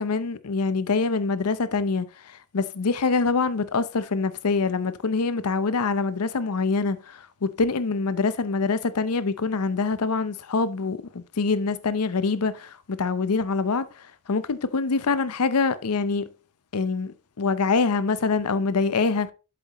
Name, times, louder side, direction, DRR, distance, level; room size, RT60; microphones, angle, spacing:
voice 1, 0.0-16.3 16.7-19.3, left 4 dB, 85° left, 0.7 m, -25 dB
7.7 x 7.7 x 3.0 m
head